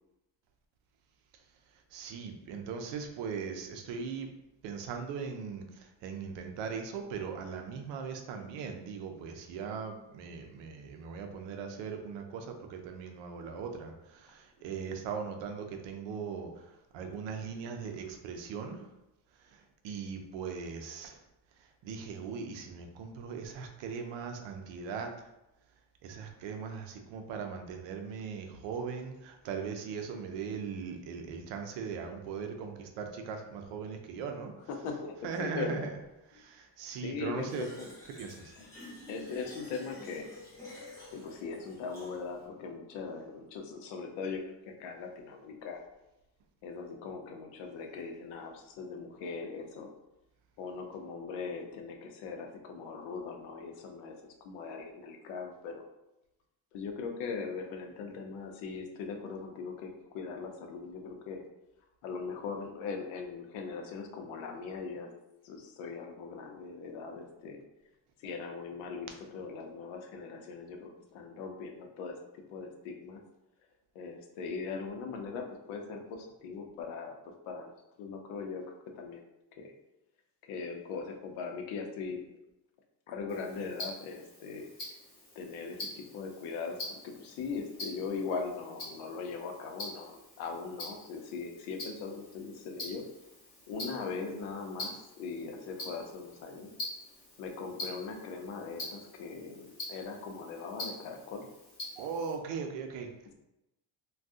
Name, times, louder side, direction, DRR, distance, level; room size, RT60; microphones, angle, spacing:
voice 1, 1.9-4.3 4.6-16.5 16.9-18.8 19.5-21.2 21.8-25.1 26.0-34.5 35.2-35.9 36.3-37.7 38.2-38.5 102.0-103.3, right 6 dB, 65° right, 4 dB, 0.6 m, -39 dB
voice 2, 34.7-35.1 35.4-35.9 37.0-37.9 39.1-40.3 41.1-45.8 46.6-49.9 50.6-54.2 54.4-55.8 56.7-61.4 62.0-65.1 65.4-67.6 68.2-72.1 72.5-73.2 73.9-77.2 77.5-77.7 78.0-78.6 79.0-79.3 79.6-79.7 80.5-82.2 83.1-84.7 85.4-93.0 93.7-96.7 97.4-101.4, left 5 dB, 90° left, 3 dB, 0.7 m, -40 dB
Fill (with liquid), 37.5-42.5, left 2 dB, 5° left, 0.5 m, -50 dB
Tick-tock, 83.3-102.3, left 1 dB, 40° left, 1.2 m, -45 dB
2.6 x 2.3 x 3.5 m, 0.91 s
cardioid pair, 180°, 47 cm